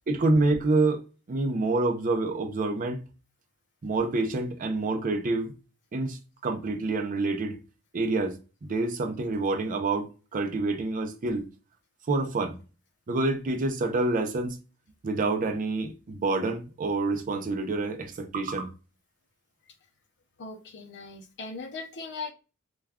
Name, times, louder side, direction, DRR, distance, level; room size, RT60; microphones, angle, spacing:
voice 1, 0.1-1.0 1.3-3.0 3.8-5.5 5.9-7.6 7.9-11.5 12.1-12.6 13.1-14.6 15.0-18.7, right 2 dB, 40° right, 0.5 m, -27 dB
voice 2, 20.4-22.3, left 3 dB, 55° left, 0.5 m, -39 dB
2.2 x 2.2 x 3.4 m
head